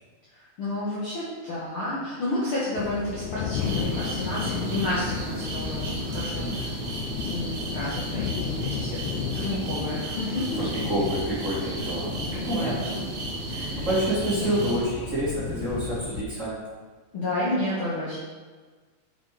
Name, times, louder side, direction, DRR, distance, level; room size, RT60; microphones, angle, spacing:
voice 1, 0.3-6.7 7.2-9.0 9.3-10.9 12.3-13.1 13.5-13.9 14.3-14.7 17.1-18.2, left 1 dB, 50° left, -9 dB, 1.9 m, -31 dB
sound 1, 2.7-16.2, left 8 dB, 90° left, 2.4 m, -34 dB
sound 2, 3.5-14.8, right 2 dB, 65° right, 2.7 m, -33 dB
voice 2, 10.5-12.1 12.4-12.7 13.8-16.6, right 1 dB, 25° right, -10 dB, 2.7 m, -28 dB
6.8 x 6.1 x 4.9 m, 1.4 s
omnidirectional pair, 3.9 m